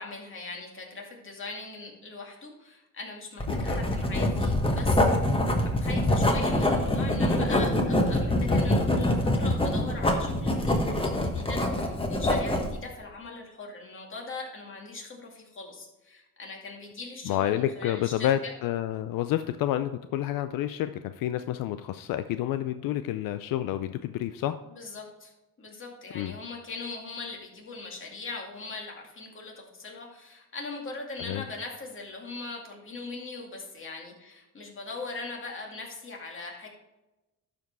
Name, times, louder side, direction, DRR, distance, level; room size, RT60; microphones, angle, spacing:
voice 1, 0.0-5.3 5.6-18.5 24.7-25.3 25.6-36.7, left 3 dB, 40° left, 0 dB, 2.4 m, -40 dB
Writing, 3.4-12.7, left 1 dB, 15° left, 1.4 m, -25 dB
voice 2, 17.2-24.6 26.1-26.3 31.2-31.4, left 12 dB, 80° left, 10 dB, 0.5 m, -29 dB
12.0 x 5.1 x 4.7 m, 1.0 s
cardioid pair, 110°, 33 cm